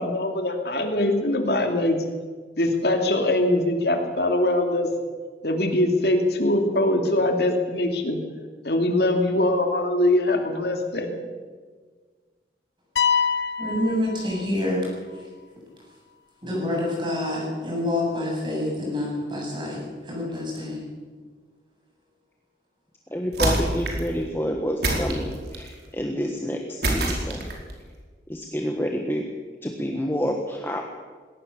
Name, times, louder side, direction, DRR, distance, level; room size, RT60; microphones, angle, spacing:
voice 1, 0.0-2.0 2.6-4.9 5.4-8.2 8.6-11.2, left 1 dB, 65° left, 4 dB, 2.5 m, -22 dB
sound 1, 13.0-14.9, left 6 dB, 85° left, 1.4 m, -25 dB
voice 2, 13.6-14.9 16.4-20.8, left 1 dB, 25° right, -2 dB, 7.9 m, -27 dB
voice 3, 23.1-27.5 28.3-29.2 29.6-30.8, equal, 10° left, 2 dB, 1.4 m, -28 dB
sound 2, 23.3-24.1 24.8-25.7 26.8-27.7, right 1 dB, 70° right, 4.7 m, -25 dB
20.5 x 18.0 x 7.2 m, 1.5 s
head